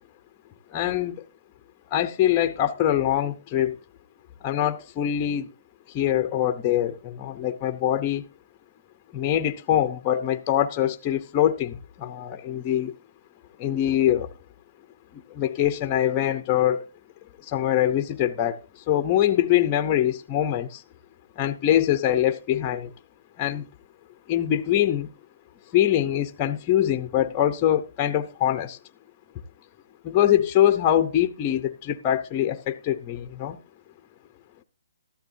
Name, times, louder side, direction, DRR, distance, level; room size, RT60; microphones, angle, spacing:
voice 1, 0.7-1.2 1.9-3.8 4.4-5.5 5.9-8.2 9.1-12.9 13.6-14.3 15.1-16.9 17.4-20.8 21.4-22.9 23.4-23.7 24.3-25.1 25.7-28.8 30.0-33.6, left 11 dB, 20° left, 0.7 m, -23 dB
14.0 x 12.0 x 2.7 m
hypercardioid pair, 170°, 0 cm